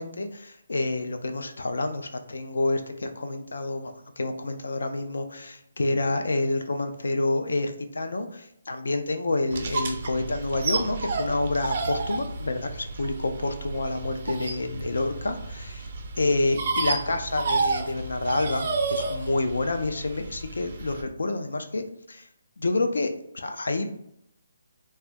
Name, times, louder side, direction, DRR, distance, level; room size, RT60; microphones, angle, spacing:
voice 1, 0.0-15.9 16.2-21.8 22.1-22.3 22.6-23.9, left 2 dB, 80° left, 7 dB, 0.4 m, -28 dB
sound 1, 9.5-21.0, right 3 dB, 30° right, 0.3 m, -31 dB
3.4 x 2.2 x 2.5 m, 0.74 s
hypercardioid pair, 180°, 0 cm